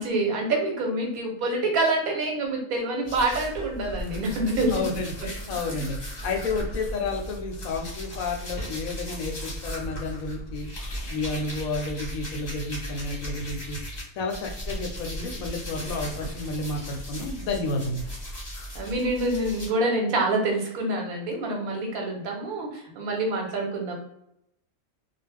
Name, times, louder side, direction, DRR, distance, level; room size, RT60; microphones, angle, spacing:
voice 1, 0.0-4.9 5.2-5.3 5.7-5.8 18.7-24.0, right 2 dB, 80° right, 1 dB, 1.2 m, -26 dB
sound 1, 3.1-14.0 14.3-19.7, equal, 35° left, 1.0 m, -36 dB
voice 2, 4.7-10.7 11.1-13.8 14.1-18.1, left 3 dB, 75° left, 2 dB, 1.0 m, -31 dB
2.4 x 2.3 x 3.2 m, 0.76 s
omnidirectional pair, 1.5 m